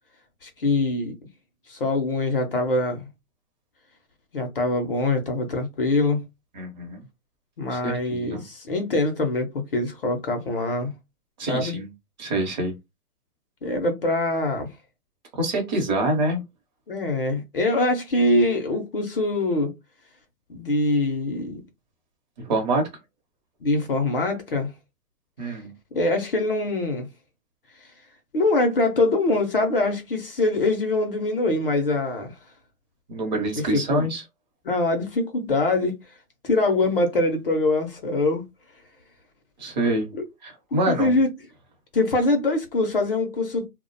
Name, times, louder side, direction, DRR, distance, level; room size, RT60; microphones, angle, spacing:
voice 1, 0.4-1.2 1.7-3.1 4.3-6.2 7.6-10.9 11.5-11.7 13.6-14.7 16.9-19.7 20.5-21.6 23.6-24.7 25.9-27.1 28.3-32.4 33.5-34.1 34.6-36.0 36.4-38.4 40.1-40.2 40.7-41.3 41.9-43.7, left 2 dB, 40° left, 0.5 m, -23 dB
voice 2, 6.5-7.0 7.7-8.4 11.4-11.9 12.2-12.7 15.3-16.4 22.4-22.9 25.4-25.7 33.1-34.2 39.6-40.1 40.4-41.2, right 2 dB, 30° right, 0.7 m, -26 dB
2.4 x 2.1 x 2.5 m
hypercardioid pair, 145°, 45 cm